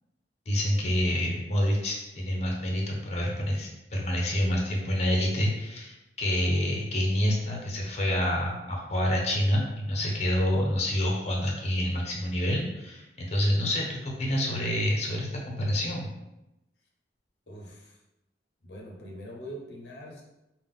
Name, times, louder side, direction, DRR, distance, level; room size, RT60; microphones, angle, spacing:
voice 1, 0.5-16.1, equal, 40° left, -1 dB, 0.9 m, -27 dB
voice 2, 17.5-18.0 18.6-20.2, equal, 70° left, -2 dB, 0.8 m, -43 dB
5.4 x 2.4 x 3.6 m, 0.93 s
head